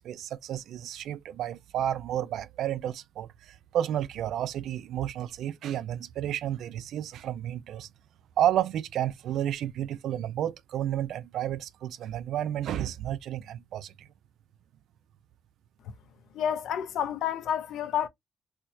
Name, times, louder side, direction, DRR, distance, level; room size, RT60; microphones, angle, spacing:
voice 1, 0.0-7.9 8.4-14.1, right 11 dB, 80° right, 0.3 m, -31 dB
voice 2, 16.3-18.1, left 9 dB, 85° left, 0.6 m, -29 dB
4.3 x 2.1 x 2.6 m
cardioid pair, 160°, 0 cm